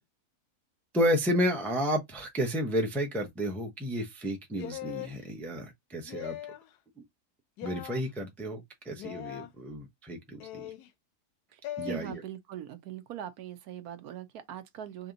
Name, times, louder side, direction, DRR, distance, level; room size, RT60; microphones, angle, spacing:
voice 1, 0.9-6.4 7.0-7.1 7.6-10.7 11.8-12.1, equal, ahead, 0.5 m, -31 dB
sound 1, 4.6-5.2 6.1-6.7 7.6-8.0 9.0-9.5 10.4-10.9 11.6-12.0, left 13 dB, 90° left, 1.1 m, -40 dB
voice 2, 11.5-15.1, right 11 dB, 75° right, 1.2 m, -41 dB
3.4 x 2.9 x 3.8 m
omnidirectional pair, 1.7 m